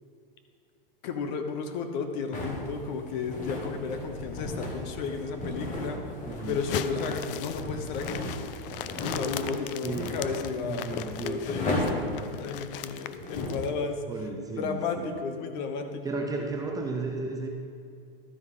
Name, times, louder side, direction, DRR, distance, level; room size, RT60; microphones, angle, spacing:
voice 1, 1.0-6.0 6.5-8.3 9.0-14.0 14.6-16.2, left 5 dB, 50° left, 6 dB, 1.1 m, -33 dB
sound 1, 2.3-13.7, left 1 dB, 25° left, 1.5 m, -35 dB
voice 2, 6.3-6.6 9.8-10.1 10.6-11.4 14.1-15.1 16.0-17.5, right 3 dB, 10° right, 1 dB, 0.5 m, -34 dB
sound 2, 6.4-13.7, left 12 dB, 65° left, 0.5 m, -39 dB
12.5 x 4.7 x 5.6 m, 2.3 s
supercardioid pair, 145°, 30 cm